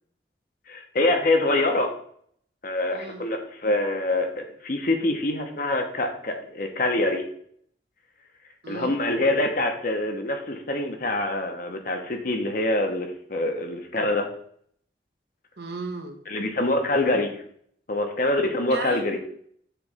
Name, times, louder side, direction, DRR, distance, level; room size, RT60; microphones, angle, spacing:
voice 1, 0.7-1.9 2.6-7.2 8.7-14.3 16.3-17.4 17.9-19.2, left 2 dB, 50° left, 4 dB, 0.9 m, -25 dB
voice 2, 2.9-3.2 8.6-9.0 15.6-16.2 18.7-19.0, right 3 dB, 65° right, 4 dB, 1.0 m, -35 dB
6.8 x 3.2 x 4.9 m, 0.64 s
head